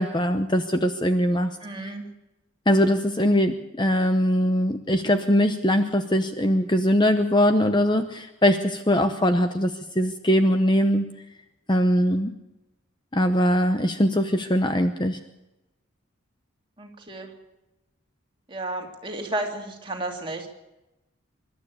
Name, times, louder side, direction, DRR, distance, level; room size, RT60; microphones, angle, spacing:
voice 1, 0.0-1.5 1.8-1.9 2.7-11.0 11.7-12.3 13.1-15.2, equal, 20° left, 8 dB, 0.8 m, -21 dB
voice 2, 1.6-2.1 16.8-17.3 18.5-20.5, right 1 dB, 25° right, 2 dB, 2.6 m, -32 dB
25.0 x 12.0 x 8.6 m, 0.97 s
head